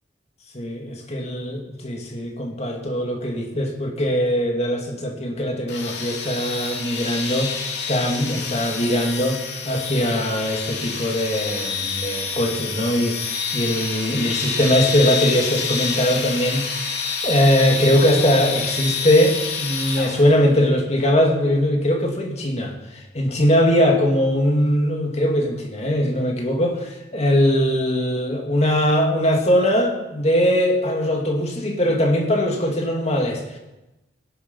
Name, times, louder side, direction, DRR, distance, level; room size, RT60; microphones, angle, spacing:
voice 1, 0.5-16.8 17.2-33.6, equal, 35° left, 2 dB, 2.4 m, -21 dB
sound 1, 5.7-20.4, left 5 dB, 70° left, 2.6 m, -28 dB
17.5 x 12.0 x 5.5 m, 1.0 s
head